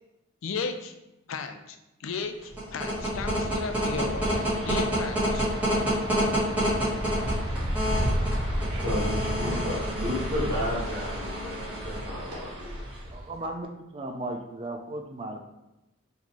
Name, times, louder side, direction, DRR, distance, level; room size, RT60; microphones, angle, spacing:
voice 1, 0.4-0.9 1.3-4.3 4.7-5.5, left 5 dB, 75° left, 7 dB, 0.4 m, -34 dB
sound 1, 2.4-13.2, equal, 10° right, 1.3 m, -28 dB
voice 2, 8.7-12.9, left 1 dB, 55° right, -5 dB, 1.5 m, -33 dB
voice 3, 13.1-15.5, right 1 dB, 25° right, 4 dB, 0.3 m, -36 dB
4.1 x 2.8 x 2.9 m, 0.96 s
head